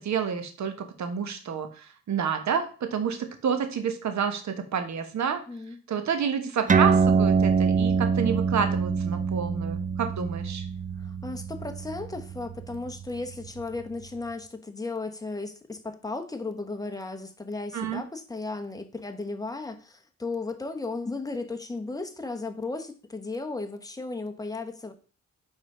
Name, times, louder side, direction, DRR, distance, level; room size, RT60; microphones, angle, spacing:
voice 1, 0.0-5.4 5.9-10.6 17.7-18.0, right 7 dB, 70° right, 7 dB, 1.1 m, -29 dB
voice 2, 5.5-5.8 11.0-24.9, left 3 dB, 10° left, 5 dB, 1.0 m, -35 dB
sound 1, 6.7-13.6, right 5 dB, 25° right, 0.4 m, -25 dB
4.9 x 3.9 x 5.4 m, 0.38 s
cardioid pair, 80°, 30 cm